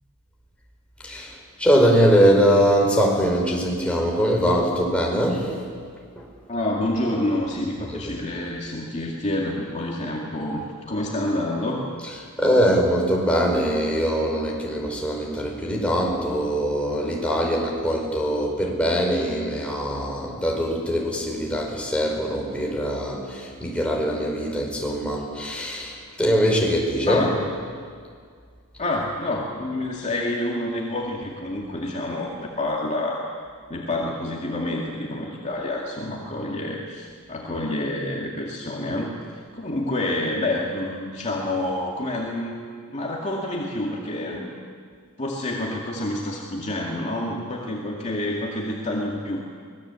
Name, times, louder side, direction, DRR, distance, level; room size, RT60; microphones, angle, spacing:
voice 1, 1.0-5.6 6.2-6.3 7.9-8.1 12.4-27.3, equal, 5° left, -2 dB, 5.1 m, -22 dB
voice 2, 6.5-11.8 27.1-27.4 28.8-33.3 33.7-44.5 45.2-49.4, left 1 dB, 35° left, -2 dB, 2.4 m, -28 dB
24.5 x 20.0 x 8.3 m, 2.1 s
head